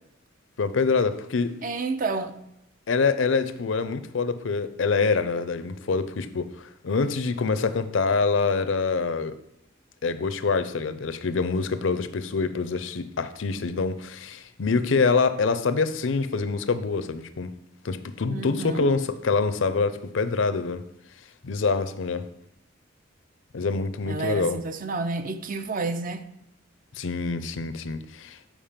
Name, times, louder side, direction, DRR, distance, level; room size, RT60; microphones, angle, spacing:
voice 1, 0.6-1.6 2.9-9.3 10.0-17.5 17.8-20.8 21.4-22.3 23.5-24.6 27.0-28.4, left 4 dB, 75° left, 0.6 m, -25 dB
voice 2, 1.6-2.4 18.3-18.9 24.1-26.2, right 3 dB, 45° right, 0.5 m, -30 dB
7.3 x 5.1 x 5.1 m
head